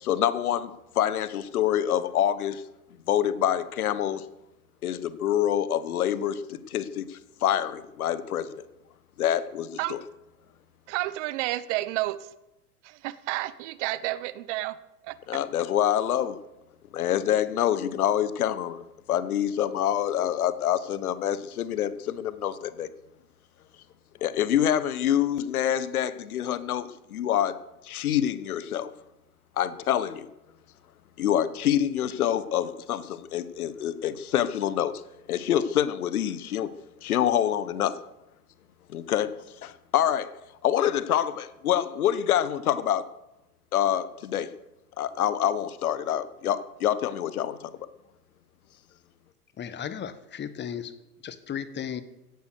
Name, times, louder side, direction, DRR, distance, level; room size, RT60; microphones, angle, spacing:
voice 1, 0.0-2.6 3.1-4.2 4.8-8.5 9.2-10.0 15.3-16.4 16.9-22.9 24.2-27.6 27.8-28.9 29.6-30.3 31.2-34.9 35.3-36.7 37.0-38.0 38.9-39.3 39.6-40.3 40.6-43.0 43.7-44.5 45.0-47.7, left 10 dB, 70° left, 1.2 m, -26 dB
voice 2, 10.9-12.3 12.8-14.8 15.0-15.2, right 17 dB, 50° right, 1.1 m, -30 dB
voice 3, 49.6-50.9 51.2-52.0, left 8 dB, 25° left, 1.3 m, -35 dB
16.5 x 11.5 x 6.5 m
figure-of-eight pair, 90°, 46 cm